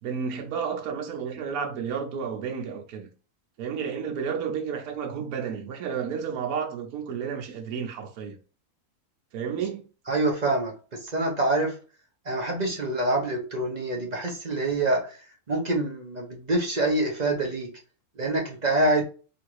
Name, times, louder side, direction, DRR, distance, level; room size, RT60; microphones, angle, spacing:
voice 1, 0.0-3.1 3.6-8.4 9.3-9.8, right 6 dB, 75° right, 1.2 m, -31 dB
voice 2, 10.1-10.7 11.1-11.7 12.3-15.0 15.5-17.7 18.2-19.0, right 2 dB, 40° right, 0.7 m, -25 dB
3.8 x 2.5 x 4.6 m
omnidirectional pair, 1.6 m